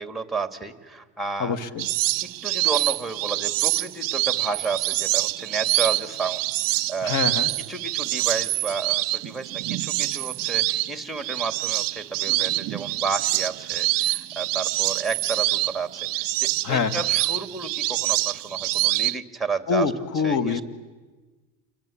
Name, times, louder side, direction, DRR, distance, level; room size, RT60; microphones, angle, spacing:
voice 1, 0.0-1.6 2.4-6.4 6.7-7.1 7.7-15.9 16.1-19.9 20.2-20.6, right 4 dB, ahead, 8 dB, 2.7 m, -31 dB
voice 2, 1.4-1.9 7.0-7.5 16.6-17.0 19.7-20.6, left 5 dB, 50° left, 11 dB, 2.0 m, -25 dB
sound 1, 1.8-19.2, right 19 dB, 55° right, 0.8 m, -26 dB
29.0 x 22.5 x 8.8 m, 1.3 s
supercardioid pair, 85°, 41 cm